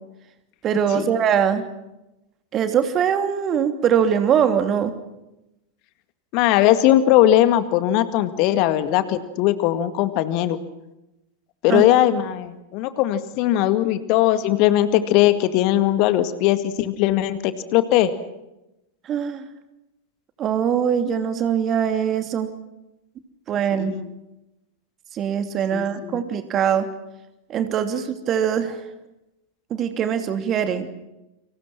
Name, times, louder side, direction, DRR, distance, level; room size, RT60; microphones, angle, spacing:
voice 1, 0.6-1.6 2.5-4.9 11.7-11.9 19.0-19.4 20.4-22.5 23.5-24.0 25.1-26.9 27.5-28.8 29.7-30.9, right 8 dB, 30° right, 7 dB, 2.9 m, -22 dB
voice 2, 6.3-10.6 11.6-18.1 23.7-24.1 25.7-26.2, left 13 dB, 45° left, 11 dB, 2.0 m, -19 dB
30.0 x 26.5 x 6.0 m, 0.94 s
figure-of-eight pair, 90°, 0 cm